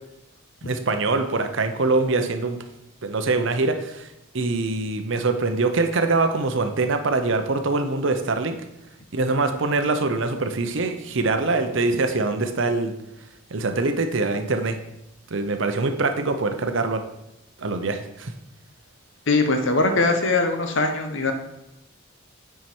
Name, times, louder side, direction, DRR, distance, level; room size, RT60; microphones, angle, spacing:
voice 1, 0.6-2.6 3.0-4.1 4.3-8.6 9.1-12.9 13.5-14.8 15.3-17.0 17.6-18.3, right 3 dB, 60° right, 7 dB, 0.7 m, -23 dB
voice 2, 19.3-21.3, left 3 dB, 65° left, 5 dB, 0.9 m, -21 dB
9.2 x 4.7 x 4.4 m, 0.91 s
head